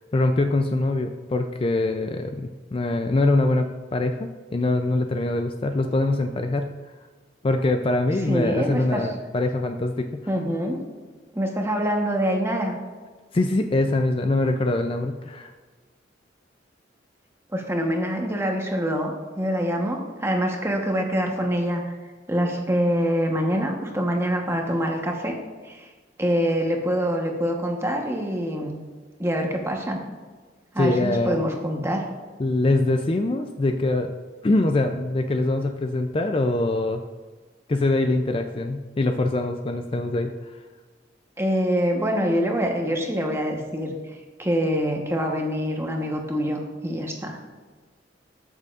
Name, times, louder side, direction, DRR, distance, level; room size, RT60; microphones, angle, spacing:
voice 1, 0.1-6.7 7.4-10.1 13.3-15.5 30.8-31.4 32.4-34.1 34.4-37.0 37.7-40.3, left 2 dB, 30° left, 6 dB, 0.4 m, -23 dB
voice 2, 8.3-9.1 10.3-10.8 11.3-12.8 17.5-21.9 22.3-25.4 25.6-25.9 26.2-28.8 29.2-30.0 30.7-32.0 41.4-47.4, equal, 15° right, 2 dB, 1.1 m, -25 dB
13.5 x 6.6 x 2.5 m, 1.4 s
head